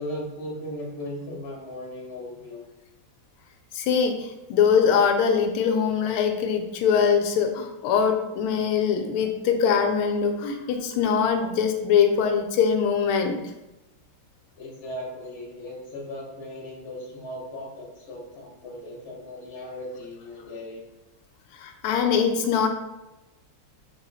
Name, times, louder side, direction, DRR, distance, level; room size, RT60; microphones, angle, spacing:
voice 1, 0.0-2.7 14.6-20.8, left 1 dB, 40° left, -3 dB, 1.1 m, -37 dB
voice 2, 3.7-13.4 21.6-22.7, left 7 dB, 90° left, 5 dB, 1.5 m, -22 dB
3.8 x 2.7 x 4.0 m, 0.98 s
omnidirectional pair, 2.3 m